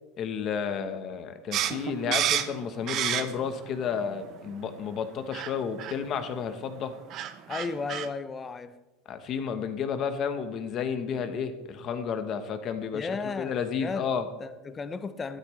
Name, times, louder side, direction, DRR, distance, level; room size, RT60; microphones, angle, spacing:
voice 1, 0.2-6.9 9.1-14.2, left 6 dB, 30° left, 1.0 m, -32 dB
sound 1, 1.5-3.6 3.9-4.7 5.3-5.5 5.8-5.9 6.8-6.9 7.1-8.1, right 11 dB, 35° right, 0.6 m, -29 dB
voice 2, 7.5-8.8 12.9-14.1 14.4-15.4, left 4 dB, 15° left, 0.5 m, -34 dB
13.5 x 12.0 x 3.2 m
supercardioid pair, 170°, 0 cm